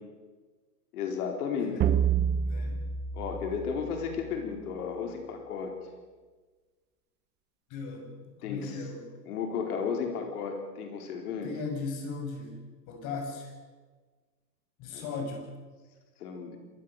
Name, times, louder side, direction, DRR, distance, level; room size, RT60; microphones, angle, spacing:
voice 1, 0.9-1.9 3.1-5.7 8.4-8.8 9.3-11.5 14.9-15.3 16.2-16.6, left 6 dB, 65° left, 3 dB, 4.6 m, -34 dB
sound 1, 1.8-4.4, right 8 dB, 20° right, 1.1 m, -29 dB
voice 2, 2.4-2.8 7.7-8.1 8.4-9.1 11.4-13.5 14.8-15.5, left 4 dB, 35° left, 3 dB, 6.9 m, -37 dB
26.5 x 19.5 x 6.8 m, 1.4 s
hypercardioid pair, 130°, 49 cm